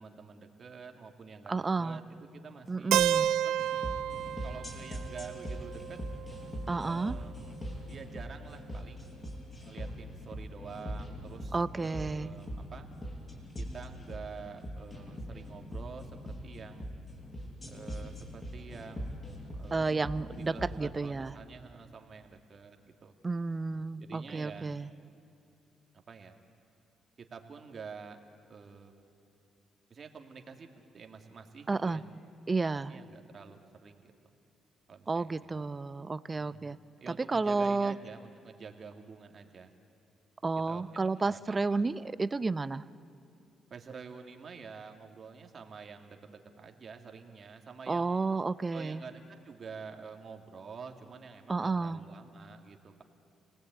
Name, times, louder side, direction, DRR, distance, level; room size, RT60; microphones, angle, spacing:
voice 1, 0.0-3.6 4.4-6.0 6.8-7.5 7.9-9.1 9.6-12.9 13.6-16.9 17.6-19.1 19.5-23.1 24.0-24.8 25.9-26.4 27.2-28.2 28.5-29.1 29.9-32.1 32.9-34.1 34.9-35.7 36.4-39.7 40.7-40.9 41.2-41.9 43.7-48.2 48.7-53.0, right 5 dB, 45° right, 4 dB, 2.5 m, -48 dB
voice 2, 1.5-2.0 2.7-3.3 6.7-7.2 11.5-12.3 19.7-21.3 23.2-24.9 31.7-32.0 32.5-32.9 35.1-36.8 37.3-37.9 40.4-42.8 47.9-49.0 51.5-52.0, right 3 dB, 25° right, 15 dB, 0.7 m, -31 dB
Keyboard (musical), 2.9-6.8, right 11 dB, 85° right, 0.5 m, -31 dB
sound 1, 3.6-20.8, equal, 25° left, 7.4 m, -41 dB
29.5 x 19.0 x 9.2 m, 2.7 s
cardioid pair, 90°, 0 cm